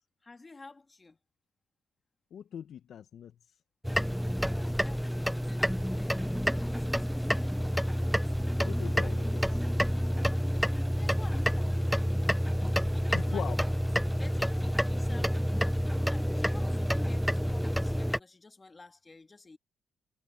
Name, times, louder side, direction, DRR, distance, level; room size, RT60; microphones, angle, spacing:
voice 1, 0.2-1.2 4.5-6.3 6.6-7.3 10.3-10.7 11.0-11.8 12.8-13.5 14.1-15.4 15.7-19.6, left 3 dB, 25° left, 1.9 m, -50 dB
voice 2, 2.3-3.3 8.6-9.7 13.1-13.6, left 8 dB, 65° left, 0.9 m, -40 dB
sound 1, 3.8-18.2, equal, ahead, 0.3 m, -29 dB
cardioid pair, 90°, 0 cm